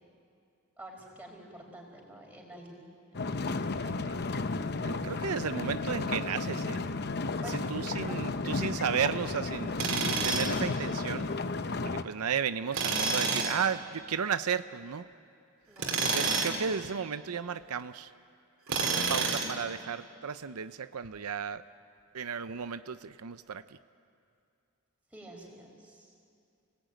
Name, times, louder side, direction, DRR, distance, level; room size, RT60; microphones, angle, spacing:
voice 1, 0.8-2.8 7.4-8.4 15.7-16.2 25.1-26.1, right 1 dB, 5° right, -1 dB, 5.0 m, -48 dB
sound 1, 3.1-12.0, left 3 dB, 50° left, 0.8 m, -33 dB
voice 2, 3.6-4.2 4.8-6.9 7.5-11.3 11.8-15.1 16.0-18.1 18.8-21.6 22.1-23.6, right 7 dB, 80° right, 12 dB, 0.6 m, -34 dB
Tools, 9.8-10.6 12.7-13.6 15.8-16.6 18.7-19.6, right 4 dB, 65° right, 3.1 m, -29 dB
29.5 x 19.0 x 9.2 m, 2.4 s
head